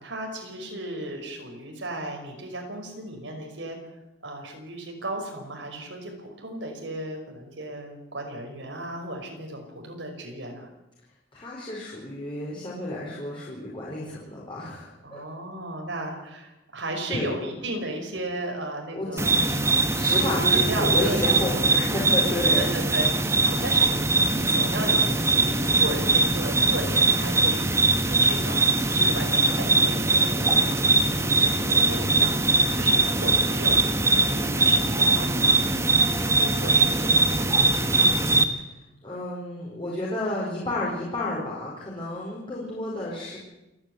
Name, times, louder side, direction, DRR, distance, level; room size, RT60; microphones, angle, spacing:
voice 1, 0.0-3.8 4.2-10.7 15.0-19.5 20.2-21.2 22.6-35.9 36.4-38.0, right 1 dB, 90° right, 2 dB, 5.5 m, -35 dB
voice 2, 11.3-15.3 17.1-17.3 18.9-19.3 19.9-22.6 38.5-38.6 39.0-43.4, left 1 dB, 30° left, -5 dB, 4.9 m, -31 dB
sound 1, 19.2-38.4, right 3 dB, 15° right, 1.3 m, -22 dB
28.5 x 10.0 x 9.5 m, 0.96 s
head